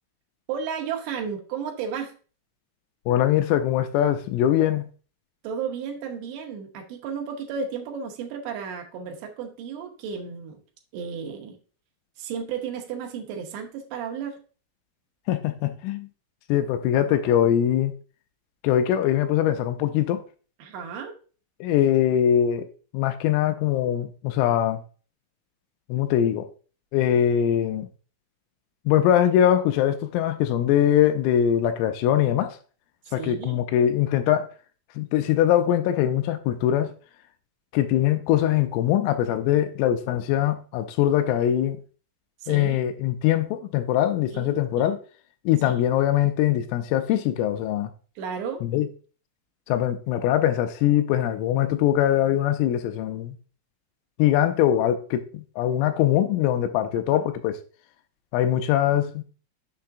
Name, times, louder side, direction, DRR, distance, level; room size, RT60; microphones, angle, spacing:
voice 1, 0.5-2.1 5.4-10.6 10.9-11.6 12.2-14.4 20.6-21.1 33.1-33.6 42.4-42.8 44.3-44.9 45.6-45.7 48.2-48.7 57.1-57.3, right 6 dB, 75° right, 2.7 m, -33 dB
voice 2, 3.1-4.9 15.3-16.1 16.5-17.9 18.6-20.2 21.6-22.7 22.9-24.8 25.9-26.5 26.9-27.9 28.9-32.6 33.1-34.5 35.0-36.9 37.7-41.8 42.5-45.0 45.5-47.9 48.6-48.9 49.7-53.4 54.2-57.6 58.3-59.2, left 11 dB, 85° left, 3.1 m, -22 dB
7.3 x 5.6 x 2.6 m
omnidirectional pair, 5.9 m